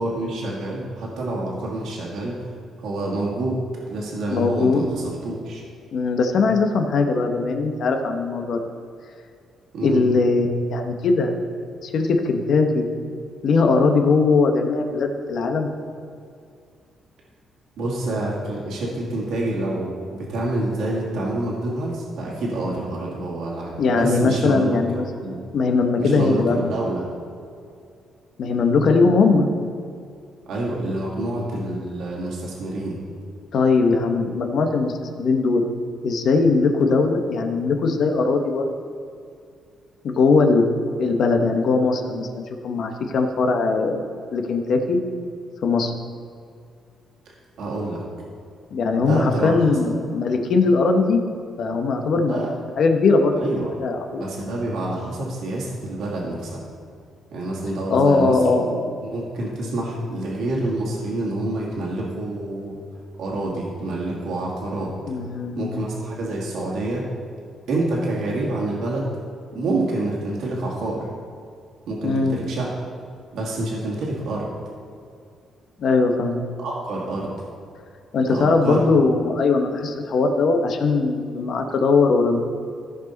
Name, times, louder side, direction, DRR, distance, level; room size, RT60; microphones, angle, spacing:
voice 1, 0.0-5.6 9.7-10.0 17.8-24.8 25.2-25.4 26.0-27.1 30.5-33.0 47.6-48.0 49.0-49.5 49.9-50.0 52.1-52.5 53.4-53.7 54.2-56.6 57.3-58.4 59.0-62.8 63.2-64.9 65.6-67.0 67.7-69.1 69.5-71.1 71.9-72.7 73.3-74.5 76.6-77.3 78.3-78.8, right 2 dB, 75° right, -4 dB, 2.1 m, -27 dB
voice 2, 4.3-4.9 5.9-8.6 9.8-11.4 11.8-12.9 13.4-15.7 23.8-25.0 25.5-26.8 28.4-29.5 33.5-35.7 36.0-38.6 40.0-40.7 41.0-44.0 44.3-45.0 45.6-45.9 48.7-51.2 51.6-54.2 57.9-58.9 65.1-65.7 72.0-72.4 75.8-76.4 78.1-82.4, left 4 dB, 65° left, 4 dB, 1.1 m, -20 dB
15.0 x 5.1 x 4.0 m, 2.3 s
cardioid pair, 90°, 0 cm